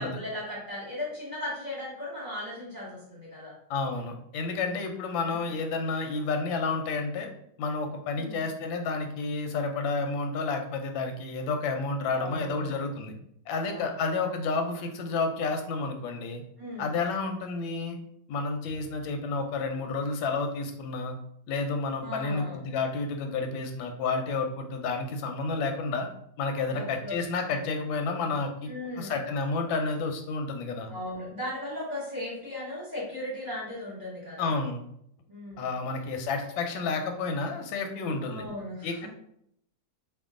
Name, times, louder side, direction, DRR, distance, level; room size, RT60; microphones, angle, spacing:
voice 1, 0.0-3.5 8.1-8.4 12.2-13.0 13.6-14.0 16.6-16.9 22.0-22.6 26.7-27.2 27.4-27.5 28.7-29.1 30.9-34.5 35.3-35.6 38.3-39.1, left 1 dB, 30° right, -7 dB, 0.9 m, -37 dB
voice 2, 3.7-7.3 7.6-13.1 13.5-16.4 16.8-18.0 18.3-21.2 21.5-26.1 26.4-28.7 29.0-30.9 34.4-34.8 35.6-38.4 38.8-39.1, left 4 dB, 90° left, 5 dB, 1.3 m, -30 dB
2.9 x 2.4 x 3.6 m, 0.71 s
omnidirectional pair, 2.0 m